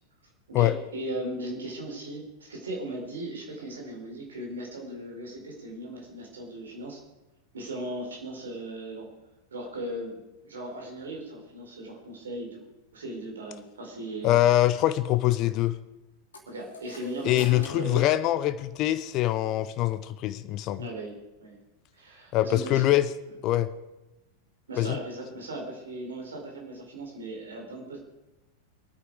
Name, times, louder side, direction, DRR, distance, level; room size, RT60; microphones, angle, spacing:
voice 1, 0.5-7.0 7.5-9.1 9.5-12.6 12.9-14.4 16.5-18.0 20.8-21.1 21.4-21.6 21.9-23.0 24.7-28.0, right 1 dB, 70° right, 0 dB, 4.4 m, -37 dB
voice 2, 14.2-15.8 17.2-20.8 22.3-23.1 23.4-23.7 24.8-25.0, left 14 dB, 40° left, 14 dB, 0.6 m, -24 dB
sound 1, 16.3-19.0, left 3 dB, 70° left, 2.8 m, -47 dB
23.0 x 9.4 x 4.9 m, 1.0 s
figure-of-eight pair, 90°, 0 cm